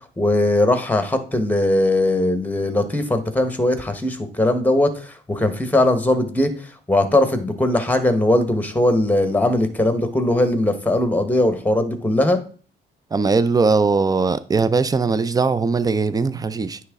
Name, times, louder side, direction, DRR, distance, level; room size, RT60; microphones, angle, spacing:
voice 1, 0.2-6.5 6.9-12.4, left 1 dB, 10° left, 1.1 m, -19 dB
voice 2, 13.1-16.8, right 4 dB, 20° right, 0.5 m, -20 dB
9.5 x 3.3 x 3.6 m
cardioid pair, 90°, 20 cm